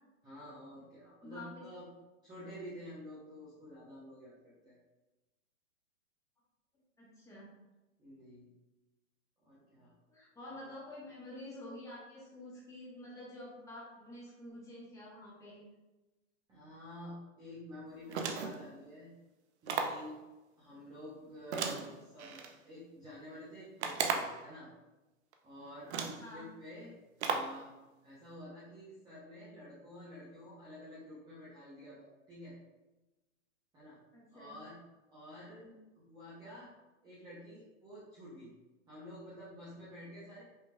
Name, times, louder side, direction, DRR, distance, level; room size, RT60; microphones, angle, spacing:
voice 1, 0.2-1.9 2.2-4.8 8.0-8.5 9.4-9.9 10.4-10.7 16.5-19.1 19.6-20.2 20.6-24.7 25.4-26.9 27.2-27.7 28.0-32.6 33.7-34.0 34.3-34.8 35.1-35.6 35.9-36.7 37.0-38.5 38.9-40.4, left 1 dB, 10° right, -9 dB, 0.7 m, -50 dB
voice 2, 1.2-1.6 7.0-7.5 10.1-15.6 20.7-20.8 26.2-26.5 34.1-34.6 35.6-35.7, left 1 dB, 10° left, -8 dB, 1.3 m, -49 dB
sound 1, 18.1-18.7 19.7-20.1 21.5-22.5 23.8-24.4 25.3-25.4 25.9-26.3 27.2-27.6, right 5 dB, 55° right, 0.6 m, -35 dB
5.4 x 3.2 x 2.3 m, 1.1 s
hypercardioid pair, 145°, 40 cm